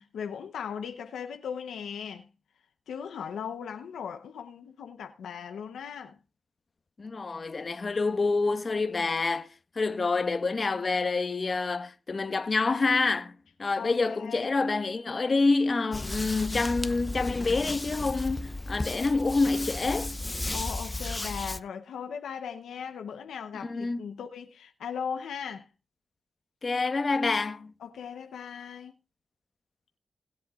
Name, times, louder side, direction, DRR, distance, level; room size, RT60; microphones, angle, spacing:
voice 1, 0.0-2.3 2.9-6.1 13.8-14.5 20.5-25.7 27.8-28.9, left 7 dB, 90° left, 0.8 m, -38 dB
voice 2, 7.0-9.5 9.7-13.3 13.6-20.2 23.6-24.0 26.6-27.7, left 3 dB, 50° left, 1.2 m, -27 dB
sound 1, 15.9-21.6, left 2 dB, 25° left, 0.8 m, -34 dB
20.0 x 7.7 x 2.4 m
supercardioid pair, 40°, 0 cm